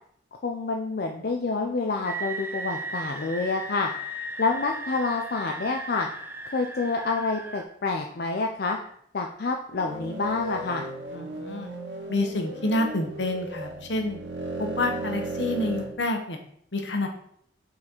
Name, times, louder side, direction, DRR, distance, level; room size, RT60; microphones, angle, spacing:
voice 1, 0.3-3.9 4.4-6.1 6.5-8.8 9.1-10.8, left 3 dB, 55° left, 2 dB, 0.5 m, -28 dB
sound 1, 2.0-7.6, right 2 dB, 10° right, 0.6 m, -36 dB
sound 2, 9.7-15.9, right 2 dB, 80° right, 1.1 m, -35 dB
voice 2, 11.1-11.7 12.1-14.2 14.6-16.4 16.7-17.1, left 2 dB, 75° left, 5 dB, 1.1 m, -28 dB
6.2 x 4.2 x 4.4 m, 0.65 s
head